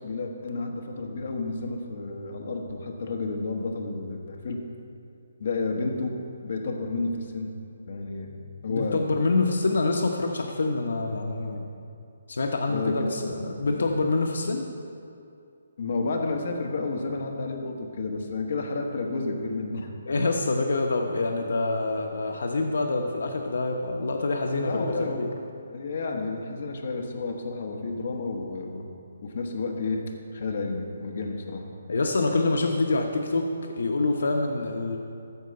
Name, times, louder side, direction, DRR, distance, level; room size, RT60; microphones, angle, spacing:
voice 1, 0.0-4.6 5.4-6.2 6.4-7.5 7.9-9.0 12.7-13.8 15.8-19.9 24.6-25.3 25.7-28.9 29.2-30.0 30.3-31.7, left 3 dB, 40° left, 2 dB, 1.2 m, -31 dB
voice 2, 8.7-11.7 12.3-14.7 20.1-25.3 31.9-35.0, left 3 dB, 65° left, 3 dB, 0.9 m, -26 dB
14.0 x 4.7 x 7.8 m, 2.5 s
hypercardioid pair, 180°, 0 cm